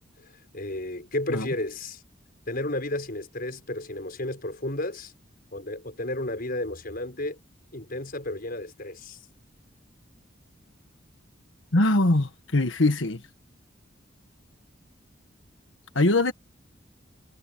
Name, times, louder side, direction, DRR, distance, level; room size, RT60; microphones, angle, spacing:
voice 1, 0.5-2.0 2.5-5.1 5.5-7.4 7.7-9.2, left 1 dB, 50° left, 5.9 m, -32 dB
voice 2, 11.7-13.2 15.9-16.3, left 2 dB, 80° left, 1.5 m, -22 dB
head